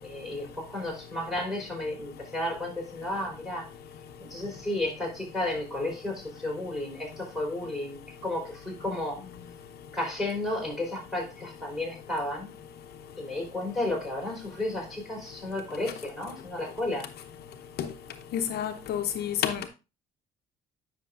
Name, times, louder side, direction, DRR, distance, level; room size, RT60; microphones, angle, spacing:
voice 1, 0.0-3.7 4.2-9.2 9.9-12.5 13.2-17.1, left 1 dB, ahead, 4.4 m, -33 dB
voice 2, 18.3-19.7, left 9 dB, 70° left, 0.8 m, -29 dB
10.0 x 6.0 x 2.5 m
cardioid pair, 110°, 17 cm